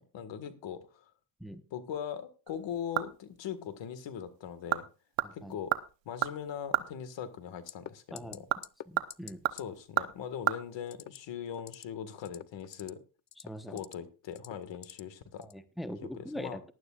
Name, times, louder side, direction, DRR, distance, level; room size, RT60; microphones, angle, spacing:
voice 1, 0.1-1.1 1.7-4.9 5.3-5.7 6.1-8.4 9.5-13.0 13.7-15.5 16.0-16.6, left 8 dB, 70° left, 10 dB, 1.8 m, -40 dB
sound 1, 2.5-3.4 3.7-3.8 4.4-4.9 5.2-6.9 8.2-10.6 10.8-10.9, right 14 dB, 70° right, 1.0 m, -32 dB
voice 2, 5.2-5.6 8.1-8.4 8.9-9.4 13.4-13.8 15.4-16.6, equal, ahead, 9 dB, 1.1 m, -42 dB
sound 2, 7.7-7.9 8.2-8.4 8.6-8.8 9.1-9.3 9.6-9.7 10.9-11.2 11.5-11.8 12.2-12.9 13.3-13.9 14.3-15.0 15.4-15.6, left 11 dB, 40° left, 0.5 m, -45 dB
18.5 x 11.5 x 2.4 m, 0.34 s
cardioid pair, 100°, 46 cm